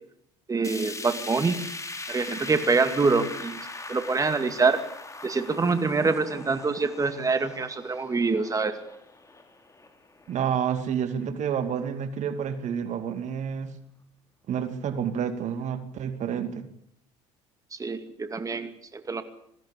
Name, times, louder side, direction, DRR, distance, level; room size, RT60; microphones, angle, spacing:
voice 1, 0.5-1.6 2.1-3.6 3.9-4.8 5.2-8.8 17.8-19.2, right 4 dB, 25° right, 9 dB, 2.5 m, -25 dB
sound 1, 0.6-10.8 11.2-11.3 11.7-11.8 12.6-12.7, left 3 dB, 20° left, 4.1 m, -40 dB
voice 2, 10.3-13.7 14.5-16.7, right 8 dB, 55° right, 10 dB, 2.5 m, -29 dB
21.5 x 15.5 x 8.5 m, 0.72 s
hypercardioid pair, 70°, 14 cm